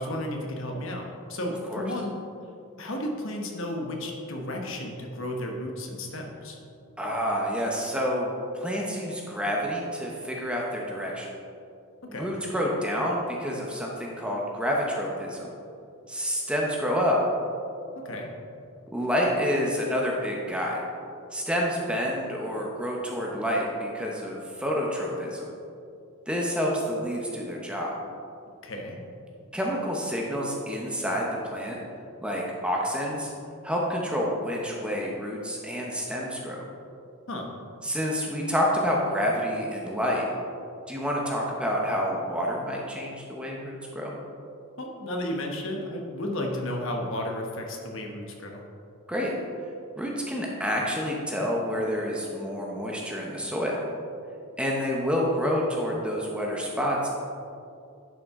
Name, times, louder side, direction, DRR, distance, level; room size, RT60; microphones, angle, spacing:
voice 1, 0.0-2.2 2.8-6.6 12.0-12.3 18.0-18.3 28.6-29.0 37.3-37.5 44.8-48.6, left 1 dB, 60° left, 1 dB, 1.1 m, -33 dB
voice 2, 7.0-8.3 8.5-11.3 12.1-15.5 16.1-17.2 18.9-20.8 21.3-25.5 26.3-27.9 29.5-31.8 32.2-33.3 33.6-36.7 37.8-40.3 40.9-44.1 49.1-49.3 50.0-53.8 54.6-57.1, equal, 5° right, -2 dB, 0.8 m, -28 dB
11.0 x 5.7 x 3.7 m, 2.6 s
head